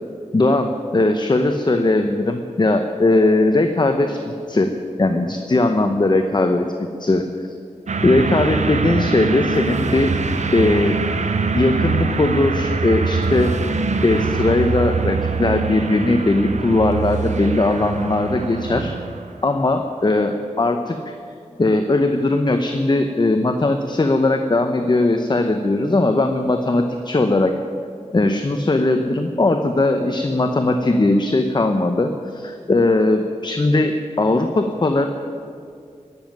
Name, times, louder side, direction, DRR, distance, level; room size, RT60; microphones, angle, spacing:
voice 1, 0.3-4.7 5.0-7.5 8.0-10.1 10.5-11.0 11.5-13.5 14.0-18.9 19.4-21.0 21.6-27.5 28.1-35.1, left 2 dB, 35° left, 6 dB, 0.9 m, -19 dB
sound 1, 7.9-19.3, right 4 dB, 75° right, 0.9 m, -23 dB
15.0 x 7.3 x 9.4 m, 2.4 s
wide cardioid pair, 60°, 12 cm